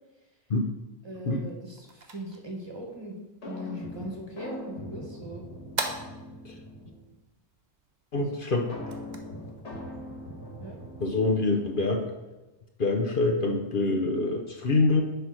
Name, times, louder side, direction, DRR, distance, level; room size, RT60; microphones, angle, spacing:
voice 1, 1.0-3.2 3.4-5.5 8.1-8.3 10.6-10.8, right 1 dB, 25° right, -1 dB, 1.3 m, -39 dB
sound 1, 1.4-11.2, right 3 dB, 40° right, 0.9 m, -43 dB
sound 2, 3.4-7.1 8.7-12.3, left 1 dB, 80° left, 1.9 m, -42 dB
voice 2, 8.1-8.7 11.0-12.0 12.8-15.0, left 3 dB, 50° left, 2 dB, 0.9 m, -25 dB
10.0 x 3.4 x 6.2 m, 1.1 s
omnidirectional pair, 1.2 m